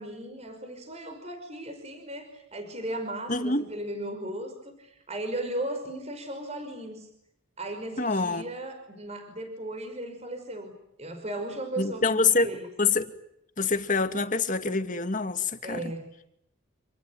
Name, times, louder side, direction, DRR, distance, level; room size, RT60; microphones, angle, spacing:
voice 1, 0.0-7.1 7.6-10.7 11.0-12.7 15.6-16.1, right 1 dB, 30° right, 5.4 m, -36 dB
voice 2, 3.3-3.7 8.0-8.4 11.8-12.5 12.8-13.1 13.6-15.8, left 4 dB, 40° left, 2.2 m, -25 dB
28.5 x 20.0 x 9.6 m
head